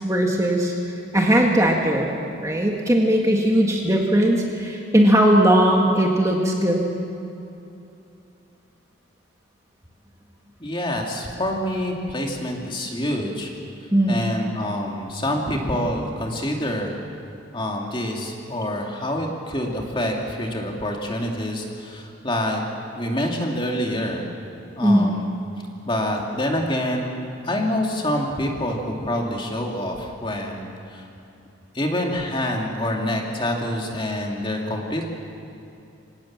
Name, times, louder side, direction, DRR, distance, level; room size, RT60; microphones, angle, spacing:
voice 1, 0.0-2.1 2.4-6.9 13.9-14.2 24.8-25.1, right 1 dB, 15° right, 0 dB, 1.8 m, -19 dB
voice 2, 10.6-13.5 14.1-17.0 17.5-22.6 22.9-24.3 24.8-25.3 25.9-31.0 31.7-35.0, left 1 dB, 25° left, 0 dB, 2.6 m, -26 dB
26.0 x 18.0 x 7.4 m, 2.8 s
head